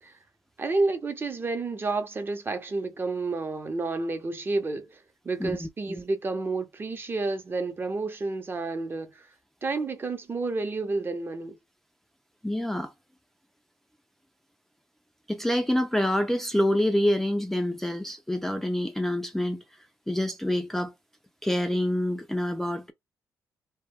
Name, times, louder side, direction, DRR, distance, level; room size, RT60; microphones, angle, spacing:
voice 1, 0.6-5.0 5.2-9.3 9.6-11.6, right 3 dB, 35° right, 0.7 m, -30 dB
voice 2, 5.4-6.0 12.4-12.9 15.3-19.6 20.1-20.9 21.4-22.9, left 1 dB, 5° left, 0.4 m, -27 dB
2.2 x 2.1 x 3.3 m
cardioid pair, 85°, 7 cm